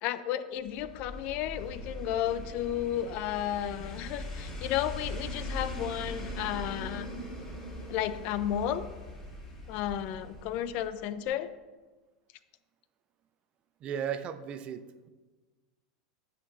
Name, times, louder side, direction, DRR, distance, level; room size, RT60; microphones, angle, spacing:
voice 1, 0.0-7.1 7.9-8.8 9.7-11.5, left 11 dB, 55° left, 13 dB, 0.4 m, -33 dB
sound 1, 0.6-11.0 11.3-11.4, left 1 dB, 25° left, 2.2 m, -41 dB
voice 2, 13.8-15.1, right 8 dB, 40° right, 11 dB, 0.5 m, -36 dB
8.5 x 4.4 x 3.9 m, 1.3 s
hypercardioid pair, 90°, 3 cm